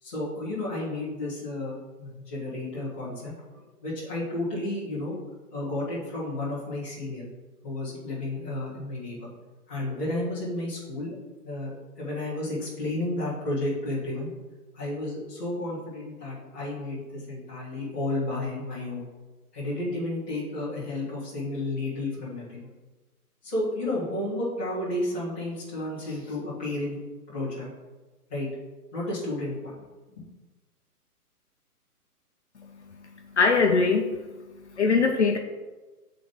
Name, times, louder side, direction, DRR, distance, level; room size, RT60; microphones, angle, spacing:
voice 1, 0.0-5.2 5.5-7.3 7.6-9.3 9.7-11.1 11.4-14.3 14.7-19.0 19.5-22.7 23.4-27.0 27.3-27.7 28.3-28.5 28.9-29.7 30.2-30.3, left 2 dB, 10° left, -12 dB, 0.7 m, -32 dB
voice 2, 33.4-34.1 34.8-35.4, left 4 dB, 50° left, 2 dB, 0.6 m, -21 dB
7.7 x 3.8 x 3.7 m, 1.2 s
hypercardioid pair, 165°, 46 cm